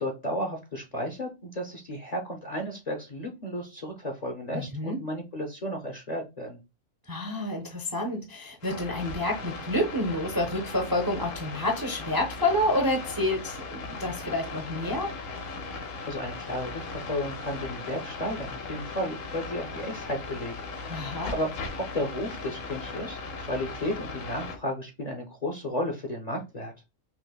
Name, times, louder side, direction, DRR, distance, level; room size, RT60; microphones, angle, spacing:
voice 1, 0.0-6.6 15.7-21.0 21.3-26.7, left 1 dB, 45° left, 0.5 m, -33 dB
voice 2, 4.5-5.0 7.1-15.1 20.9-21.3, left 1 dB, 30° right, 0.4 m, -29 dB
sound 1, 8.6-24.6, left 3 dB, 80° left, 1.2 m, -38 dB
5.6 x 2.1 x 2.2 m
omnidirectional pair, 1.3 m